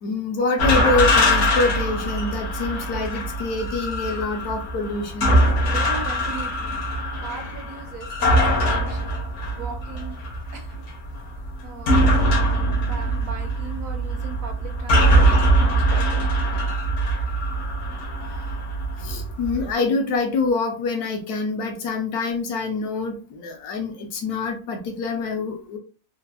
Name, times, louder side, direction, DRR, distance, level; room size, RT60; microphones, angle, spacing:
voice 1, 0.0-5.4 19.0-25.8, left 3 dB, 75° left, 3 dB, 1.2 m, -26 dB
sound 1, 0.6-19.6, right 1 dB, 60° left, 0.9 m, -22 dB
voice 2, 5.7-6.8 7.2-9.2 9.6-10.2 10.5-10.8 11.6-16.3, right 5 dB, 70° right, 3 dB, 1.0 m, -38 dB
3.3 x 2.0 x 2.3 m, 0.37 s
omnidirectional pair, 1.6 m